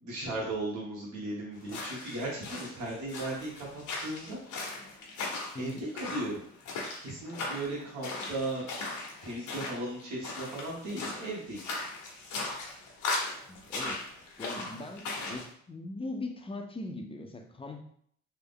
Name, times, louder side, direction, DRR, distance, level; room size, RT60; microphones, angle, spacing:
voice 1, 0.0-4.4 5.6-6.4 7.0-8.7 9.2-11.6, right 2 dB, 70° right, -5 dB, 1.2 m, -36 dB
sound 1, 1.6-15.5, left 3 dB, 90° left, 0.9 m, -38 dB
voice 2, 5.5-5.9 13.5-14.0 14.4-17.8, left 2 dB, 20° left, 4 dB, 0.5 m, -40 dB
3.4 x 2.0 x 3.5 m, 0.63 s
cardioid pair, 90°, 30 cm